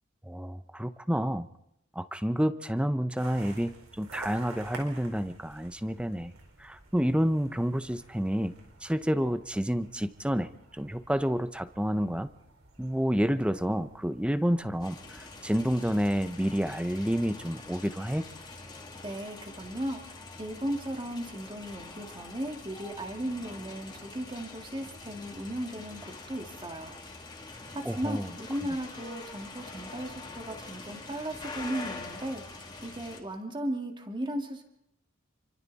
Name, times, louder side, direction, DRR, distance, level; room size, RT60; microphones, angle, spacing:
voice 1, 0.2-1.5 1.9-6.3 6.6-8.5 8.8-12.3 12.8-18.3 27.8-28.3, equal, 5° right, 12 dB, 0.7 m, -29 dB
sound 1, 3.2-17.3, right 3 dB, 90° right, 4.6 m, -52 dB
sound 2, 14.8-33.2, left 3 dB, 20° left, 2.8 m, -45 dB
voice 2, 19.0-27.0 27.7-34.6, right 1 dB, 25° right, 3 dB, 2.4 m, -36 dB
28.0 x 24.5 x 4.2 m, 0.83 s
head